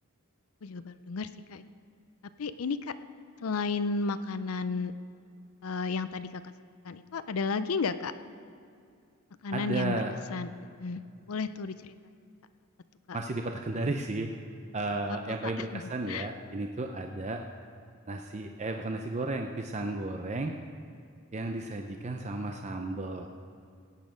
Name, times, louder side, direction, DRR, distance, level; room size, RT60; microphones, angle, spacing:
voice 1, 0.6-1.6 2.4-2.9 3.4-4.9 5.6-6.5 6.9-8.1 9.4-10.0 10.3-10.5 10.8-11.0 11.3-11.9 13.1-13.2 15.4-15.8 16.1-16.3, left 4 dB, 70° left, 12 dB, 0.5 m, -33 dB
voice 2, 9.5-10.1 13.1-14.3 14.7-17.4 18.1-20.6 21.3-23.3, right 2 dB, 30° right, 4 dB, 0.6 m, -33 dB
17.0 x 9.2 x 5.1 m, 2.3 s
head